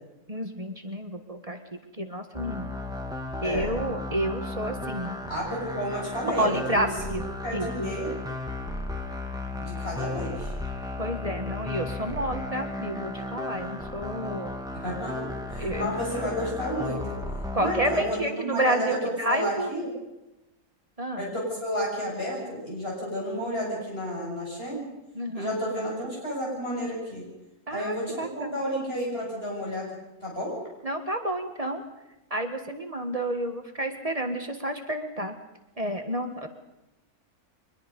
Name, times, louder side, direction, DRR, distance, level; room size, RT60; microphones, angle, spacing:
voice 1, 0.3-1.6 2.0-2.7 3.4-5.2 6.4-7.3 7.5-7.9 11.0-14.5 15.6-15.9 17.5-19.7 21.0-21.3 25.2-25.5 27.7-28.6 30.8-31.8 32.3-35.4 35.8-36.5, right 1 dB, 25° right, 5 dB, 1.6 m, -30 dB
sound 1, 2.3-18.0, left 2 dB, 5° right, 1.9 m, -35 dB
voice 2, 5.3-7.1 7.4-8.1 9.6-10.5 14.7-15.2 15.5-17.0 17.6-19.0 19.3-19.9 21.2-24.8 25.3-27.3 27.7-30.5, equal, 40° left, -3 dB, 7.4 m, -31 dB
23.5 x 21.0 x 5.4 m, 0.97 s
omnidirectional pair, 1.6 m